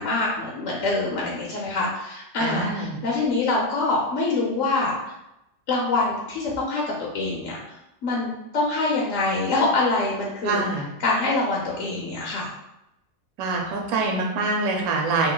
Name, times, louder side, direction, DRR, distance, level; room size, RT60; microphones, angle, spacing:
voice 1, 0.0-4.9 5.7-6.8 7.1-7.7 8.0-10.7 11.0-12.5, left 3 dB, 65° left, -3 dB, 0.8 m, -25 dB
voice 2, 2.4-3.0 10.4-10.8 13.4-15.3, right 3 dB, 65° right, 0 dB, 1.1 m, -25 dB
3.0 x 2.5 x 3.8 m, 0.88 s
omnidirectional pair, 1.9 m